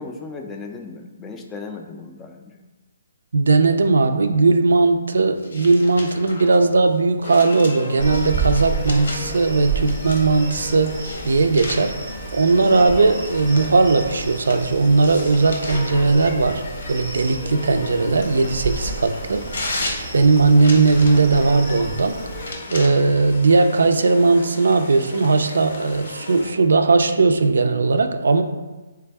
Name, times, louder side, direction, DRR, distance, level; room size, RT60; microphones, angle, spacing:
voice 1, 0.0-2.6, left 4 dB, 15° left, 3 dB, 0.3 m, -36 dB
voice 2, 3.3-10.9 11.2-11.9 12.3-16.6 16.9-19.4 20.1-22.2 22.7-28.4, right 3 dB, 75° right, 8 dB, 0.4 m, -18 dB
sound 1, 5.4-9.4 9.9-10.4 10.9-14.6 15.0-16.1 16.8-21.5 22.3-22.9, left 2 dB, 75° left, 0.9 m, -35 dB
sound 2, 7.2-26.5, left 3 dB, 55° left, 0.6 m, -36 dB
sound 3, 8.0-22.5, right 5 dB, 30° right, 0.6 m, -32 dB
3.3 x 3.3 x 3.4 m, 1.2 s
hypercardioid pair, 150°, 0 cm